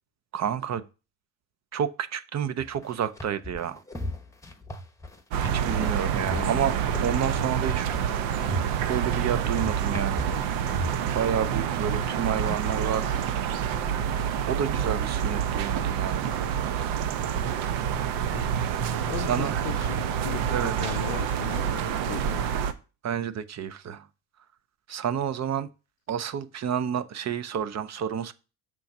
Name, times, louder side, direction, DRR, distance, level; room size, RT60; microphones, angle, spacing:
voice 1, 0.3-0.8 1.7-3.8 5.4-6.8 7.0-7.9 8.9-10.3 11.1-13.2 14.5-16.3 19.3-19.5 20.5-21.0 23.0-24.1 24.9-25.7 26.1-28.3, right 8 dB, 35° right, 0.5 m, -29 dB
sound 1, 2.6-12.6, equal, 5° left, 0.9 m, -37 dB
sound 2, 5.3-22.7, right 8 dB, 80° right, 0.8 m, -27 dB
voice 2, 6.3-6.7 11.3-11.6 12.1-12.2 18.3-18.6 19.1-22.4, left 14 dB, 70° left, 0.6 m, -38 dB
6.0 x 3.8 x 5.8 m
supercardioid pair, 90°, 45 cm